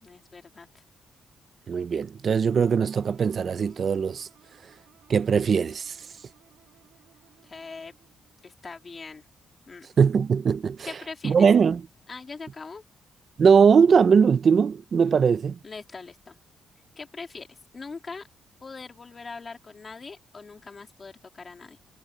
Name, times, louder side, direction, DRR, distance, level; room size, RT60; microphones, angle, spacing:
voice 1, 0.0-0.8 7.4-7.9 8.4-9.3 9.7-9.9 10.8-11.5 12.1-12.8 15.6-16.4 17.0-18.3 18.6-21.8, left 4 dB, 25° left, 2.8 m, -41 dB
voice 2, 1.7-4.3 5.1-6.0 10.0-10.9 11.2-11.8 13.4-15.6, right 6 dB, 35° right, 0.6 m, -20 dB
sound 1, 2.5-8.4, right 11 dB, 70° right, 6.1 m, -60 dB
cardioid pair, 175°, 0 cm